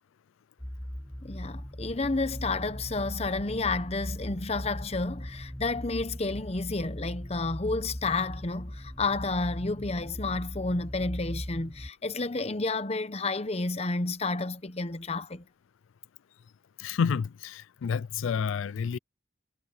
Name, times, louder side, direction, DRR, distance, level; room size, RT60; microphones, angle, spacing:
sound 1, 0.6-11.9, equal, 5° left, 0.7 m, -39 dB
voice 1, 1.2-15.4, left 3 dB, 30° left, 0.9 m, -31 dB
voice 2, 16.8-19.0, left 6 dB, 85° left, 0.4 m, -29 dB
head